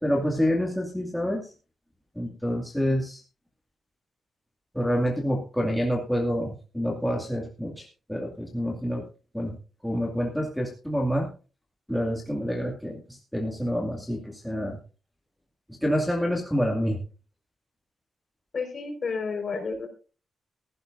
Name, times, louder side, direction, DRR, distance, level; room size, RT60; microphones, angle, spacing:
voice 1, 0.0-1.4 2.2-3.2 4.7-9.0 9.3-9.5 9.8-11.3 11.9-14.8 15.8-17.0, equal, ahead, -2 dB, 2.3 m, -27 dB
voice 2, 18.5-19.9, left 4 dB, 40° left, 5 dB, 4.8 m, -31 dB
17.0 x 15.5 x 2.6 m, 0.35 s
wide cardioid pair, 160°, 0 cm